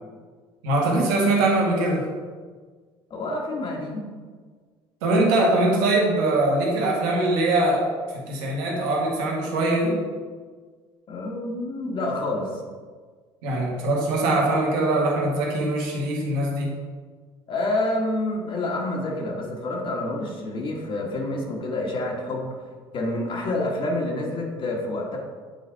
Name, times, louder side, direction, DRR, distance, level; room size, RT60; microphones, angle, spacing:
voice 1, 0.6-2.1 5.0-7.9 8.1-10.0 13.4-16.7, right 2 dB, 85° right, -2 dB, 1.6 m, -22 dB
voice 2, 3.1-4.1 11.1-12.6 17.5-22.5 22.9-25.2, left 2 dB, 50° left, -1 dB, 1.5 m, -28 dB
8.1 x 3.9 x 4.6 m, 1.5 s
supercardioid pair, 80°, 11 cm